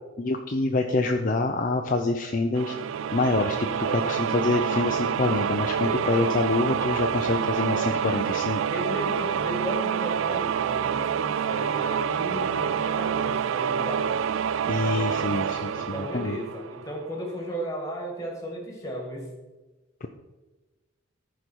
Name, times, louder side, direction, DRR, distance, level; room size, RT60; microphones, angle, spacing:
voice 1, 0.2-2.7 3.1-8.6 14.7-16.4 20.0-20.1, left 3 dB, 40° left, 3 dB, 0.6 m, -26 dB
sound 1, 2.6-17.2, right 8 dB, 70° right, 0.3 m, -27 dB
voice 2, 8.7-14.1 15.7-19.3, equal, 15° left, 1 dB, 2.1 m, -35 dB
13.5 x 5.1 x 4.6 m, 1.2 s
head